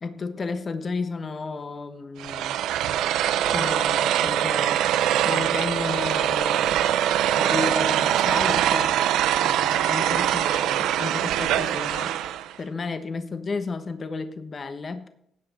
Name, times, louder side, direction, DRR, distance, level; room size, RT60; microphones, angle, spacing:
voice 1, 0.0-2.6 3.5-4.8 5.2-6.8 7.4-9.0 9.4-15.1, left 4 dB, 40° left, 9 dB, 1.1 m, -33 dB
sound 1, 2.2-12.5, right 11 dB, 90° right, 0.5 m, -23 dB
17.5 x 5.9 x 4.2 m, 0.72 s
cardioid pair, 90°, 0 cm